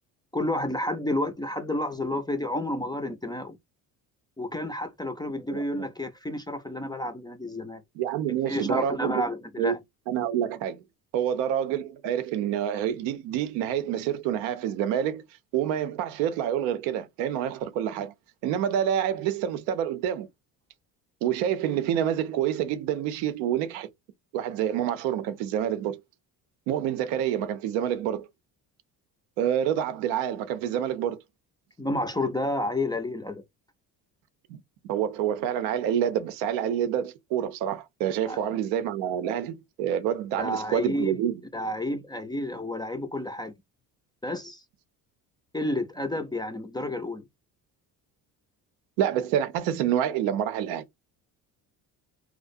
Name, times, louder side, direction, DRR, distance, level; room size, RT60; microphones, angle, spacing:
voice 1, 0.3-3.6 4.4-7.8 8.5-9.8 31.8-33.4 38.3-38.4 40.4-41.2 41.5-43.5 44.2-44.6 45.5-47.3, left 1 dB, 10° left, 0.4 m, -30 dB
voice 2, 5.5-5.9 8.0-9.2 9.6-9.8 10.1-10.8 11.1-15.2 15.5-18.1 18.4-20.3 21.2-23.9 24.3-26.0 26.7-28.3 29.4-31.2 34.8-41.4 49.0-50.8, right 10 dB, 80° right, 0.6 m, -27 dB
2.4 x 2.1 x 2.5 m
supercardioid pair, 65°, 45 cm